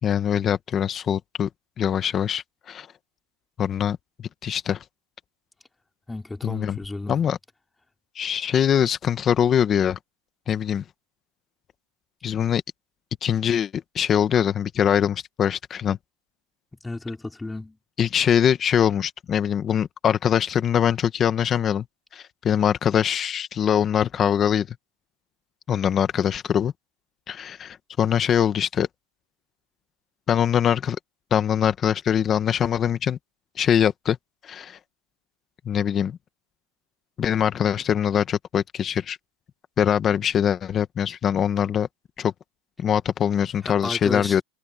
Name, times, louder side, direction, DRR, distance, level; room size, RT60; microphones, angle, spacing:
voice 1, 0.0-1.5 1.8-2.9 3.6-4.8 6.4-6.8 7.1-7.4 8.1-10.0 10.5-10.8 12.2-12.6 13.2-16.0 18.0-21.8 22.1-24.7 25.7-26.7 27.3-28.9 30.3-31.0 31.3-33.2 33.6-34.2 34.4-34.8 35.6-36.2 37.2-39.2 39.8-41.9 42.2-42.3 42.8-44.4, left 9 dB, 25° left, 1.4 m, -23 dB
voice 2, 6.1-7.1 16.8-17.8 43.6-44.4, left 2 dB, 5° left, 4.8 m, -32 dB
supercardioid pair, 150°, 0 cm